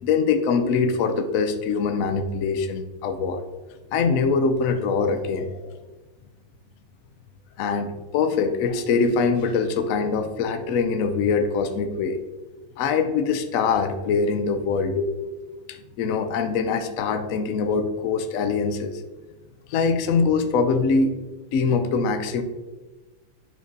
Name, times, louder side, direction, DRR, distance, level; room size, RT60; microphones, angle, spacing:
voice 1, 0.0-3.4 3.9-5.7 7.6-12.2 12.8-19.0 19.7-21.2 21.5-22.4, left 5 dB, 85° left, 7 dB, 0.7 m, -23 dB
10.0 x 4.6 x 2.7 m, 1.2 s
omnidirectional pair, 2.2 m